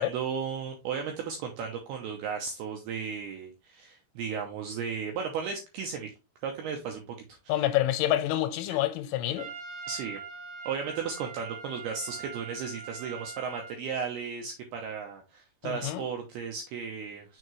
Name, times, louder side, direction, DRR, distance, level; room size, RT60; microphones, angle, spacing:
voice 1, 0.0-6.1 6.4-7.7 8.7-8.8 9.9-10.2 10.7-17.4, right 6 dB, 90° right, 2.3 m, -35 dB
voice 2, 7.5-9.5 15.6-16.0, left 13 dB, 90° left, 3.2 m, -27 dB
Trumpet, 9.4-13.8, right 5 dB, 70° right, 1.6 m, -42 dB
6.5 x 4.6 x 3.1 m
omnidirectional pair, 5.6 m